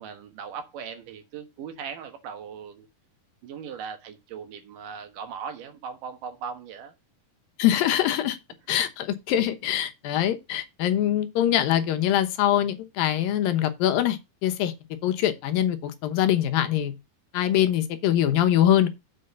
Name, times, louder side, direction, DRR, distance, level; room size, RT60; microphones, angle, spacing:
voice 1, 0.0-2.9 3.4-6.9, right 7 dB, 70° right, 2.8 m, -38 dB
voice 2, 7.6-8.4 8.7-14.7 15.0-16.9 17.3-18.9, left 11 dB, 80° left, 2.7 m, -23 dB
7.7 x 5.0 x 6.6 m
omnidirectional pair, 4.1 m